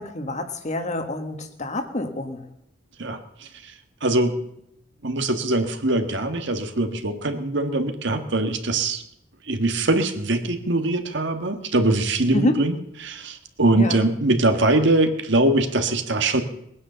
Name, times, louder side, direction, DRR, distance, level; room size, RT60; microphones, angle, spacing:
voice 1, 0.0-2.5 12.3-12.6 13.8-14.0, left 1 dB, 40° left, 7 dB, 1.6 m, -27 dB
voice 2, 3.0-3.7 4.0-4.4 5.0-9.0 9.5-16.4, right 2 dB, 65° right, 7 dB, 1.6 m, -22 dB
19.5 x 9.6 x 6.9 m, 0.78 s
head